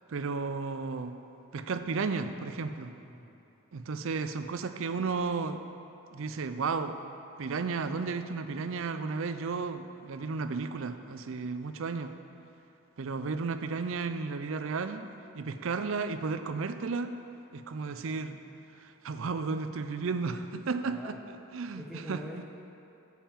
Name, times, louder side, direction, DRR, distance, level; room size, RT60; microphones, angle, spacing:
voice 1, 0.1-1.1 1.5-2.9 3.7-5.6 6.1-7.0 7.4-12.1 13.0-15.1 15.3-17.1 17.5-18.4 18.8-21.2 21.5-22.2, right 4 dB, 60° right, 9 dB, 0.5 m, -33 dB
voice 2, 3.1-3.4 20.9-21.2 21.8-22.4, left 1 dB, ahead, -2 dB, 0.5 m, -44 dB
8.8 x 5.5 x 7.3 m, 2.8 s
head